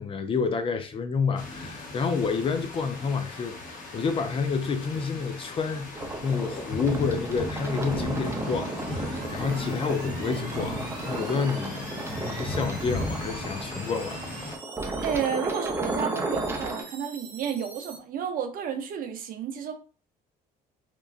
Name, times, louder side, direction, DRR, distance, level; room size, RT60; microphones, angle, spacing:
voice 1, 0.0-5.9 6.2-11.9 12.3-14.2, left 5 dB, 35° left, 0.3 m, -29 dB
sound 1, 1.4-14.6, left 1 dB, 50° left, 0.7 m, -36 dB
sound 2, 5.9-16.8, right 2 dB, 15° right, 0.5 m, -35 dB
sound 3, 8.0-18.0, right 4 dB, 75° right, 0.9 m, -44 dB
voice 2, 15.0-19.7, right 7 dB, 55° right, 0.6 m, -31 dB
3.0 x 2.3 x 2.4 m
cardioid pair, 110°, 17 cm